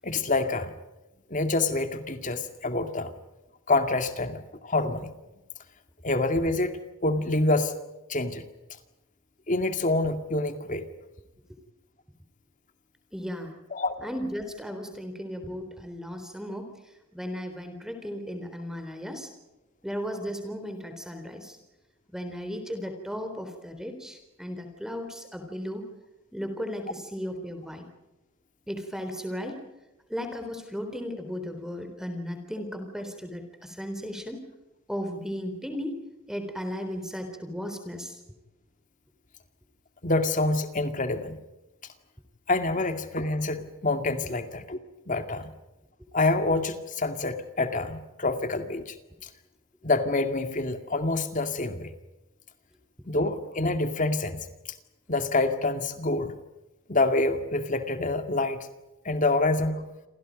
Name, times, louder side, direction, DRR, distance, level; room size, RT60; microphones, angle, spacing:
voice 1, 0.0-0.7 1.3-3.1 3.7-5.1 6.0-7.8 8.1-8.4 9.5-10.9 13.7-13.9 40.0-41.4 42.5-44.8 45.1-45.5 46.1-49.0 49.8-51.9 53.1-54.5 55.1-56.3 56.9-58.7 59.0-59.9, left 2 dB, 35° left, 8 dB, 2.2 m, -27 dB
voice 2, 13.1-13.6 14.0-16.7 17.1-19.3 19.8-21.6 22.1-25.8 26.3-27.9 28.7-29.6 30.1-34.4 34.9-36.0 36.3-38.2, equal, ahead, 7 dB, 3.7 m, -35 dB
29.0 x 27.0 x 5.3 m, 0.98 s
head